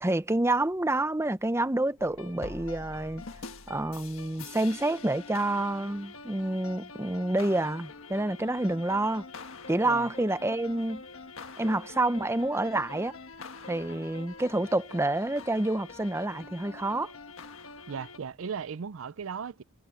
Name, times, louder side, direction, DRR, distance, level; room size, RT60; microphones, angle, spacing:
voice 1, 0.0-3.2 3.7-9.3 9.7-11.0 11.6-13.1 13.7-17.1, right 2 dB, 10° right, 0.7 m, -28 dB
sound 1, 2.0-18.2, left 4 dB, 75° left, 1.4 m, -45 dB
voice 2, 17.9-19.6, right 6 dB, 70° right, 0.5 m, -37 dB
head